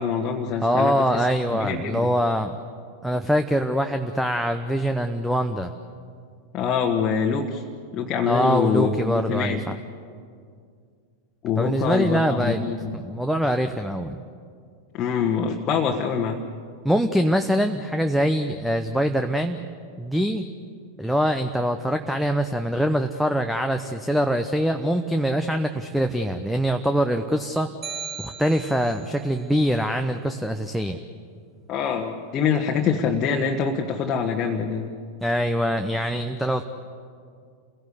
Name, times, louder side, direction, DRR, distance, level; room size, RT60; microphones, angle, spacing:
voice 1, 0.0-2.1 6.5-7.6 7.9-9.6 11.4-13.0 14.9-16.4 31.7-34.9, left 6 dB, 30° left, 1 dB, 1.5 m, -25 dB
voice 2, 0.6-2.5 3.0-5.7 8.3-9.8 11.6-12.6 12.9-14.2 16.8-19.6 20.0-20.5 21.0-27.7 28.2-31.0 35.2-36.6, equal, ahead, 7 dB, 0.9 m, -23 dB
sound 1, 27.8-29.2, right 6 dB, 20° right, 1.2 m, -36 dB
29.0 x 17.0 x 8.3 m, 2.2 s
figure-of-eight pair, 90°, 0 cm